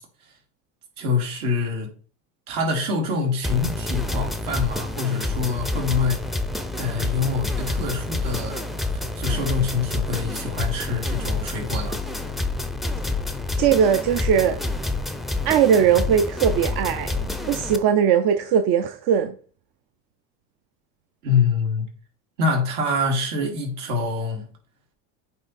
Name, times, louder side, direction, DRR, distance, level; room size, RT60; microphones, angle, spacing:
voice 1, 1.0-1.9 2.5-6.2 6.8-12.0 21.2-21.9 22.4-24.5, left 4 dB, 70° right, 2.5 m, -25 dB
sound 1, 3.4-17.8, left 2 dB, ahead, 0.5 m, -28 dB
voice 2, 13.6-14.6 15.4-17.2 17.4-19.3, right 8 dB, 50° right, 0.7 m, -19 dB
8.4 x 3.2 x 4.2 m
supercardioid pair, 95°, 46 cm